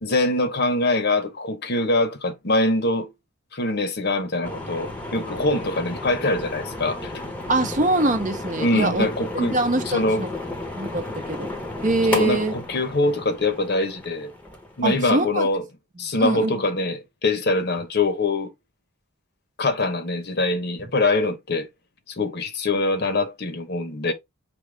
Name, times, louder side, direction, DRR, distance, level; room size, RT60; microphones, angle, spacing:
voice 1, 0.0-3.1 3.5-7.1 8.6-9.6 9.9-10.2 12.1-14.3 14.8-15.6 16.0-18.5 19.6-21.7 22.1-24.1, left 2 dB, 50° left, 0.9 m, -23 dB
sound 1, 4.4-15.6, left 2 dB, 5° left, 0.9 m, -33 dB
voice 2, 7.5-9.1 9.3-10.3 10.7-11.5 11.8-12.5 14.8-15.5 16.0-16.5, right 2 dB, 35° right, 0.8 m, -23 dB
5.2 x 2.8 x 3.3 m
head